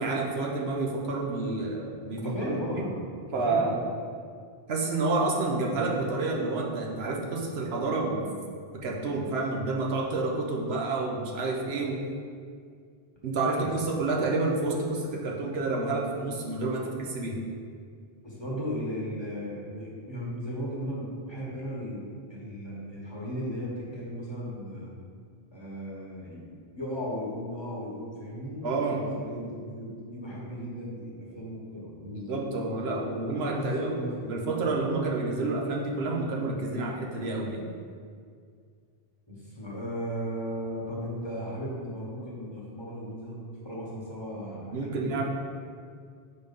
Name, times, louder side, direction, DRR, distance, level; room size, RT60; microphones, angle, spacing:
voice 1, 0.0-2.8 3.3-3.8 4.7-8.3 8.7-12.1 13.2-17.4 28.6-29.1 32.0-34.0 34.3-37.7 44.7-45.2, right 3 dB, 85° right, -1 dB, 1.1 m, -29 dB
voice 2, 2.2-3.8 13.4-13.7 14.1-14.3 16.7-16.9 18.2-24.9 25.5-34.4 39.3-45.2, equal, 25° left, -6 dB, 1.4 m, -36 dB
5.3 x 4.1 x 5.3 m, 2.2 s
omnidirectional pair, 1.0 m